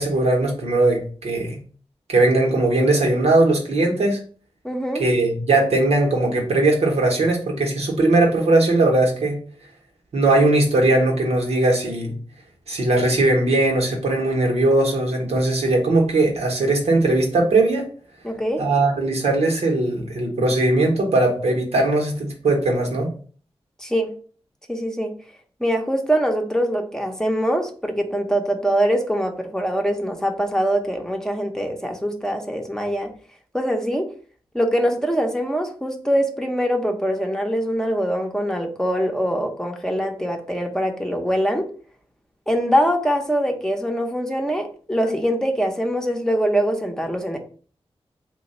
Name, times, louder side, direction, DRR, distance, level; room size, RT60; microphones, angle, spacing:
voice 1, 0.0-1.6 2.1-4.2 5.0-9.4 10.1-12.2 12.7-17.8 18.6-23.1, right 2 dB, 90° right, 1 dB, 1.0 m, -19 dB
voice 2, 4.6-5.0 18.2-18.6 23.8-24.1 24.7-25.1 25.6-33.1 33.5-34.1 34.5-41.7 42.5-47.4, equal, 5° left, 3 dB, 0.7 m, -23 dB
3.0 x 2.3 x 4.2 m, 0.42 s
cardioid pair, 55°, 10 cm